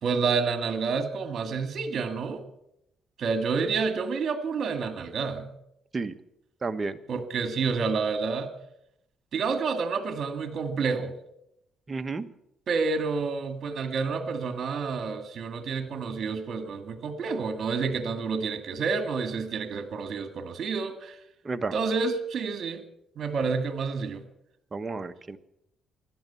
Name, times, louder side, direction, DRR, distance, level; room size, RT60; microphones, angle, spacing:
voice 1, 0.0-2.4 3.2-5.5 7.1-8.5 9.3-11.1 12.7-21.1 21.7-22.8 23.2-24.2, right 5 dB, 55° right, 8 dB, 2.1 m, -29 dB
voice 2, 6.6-7.0 11.9-12.3 21.4-21.7 24.7-25.4, right 3 dB, 30° right, 8 dB, 1.1 m, -31 dB
16.0 x 12.0 x 7.0 m, 0.80 s
cardioid pair, 90°, 0 cm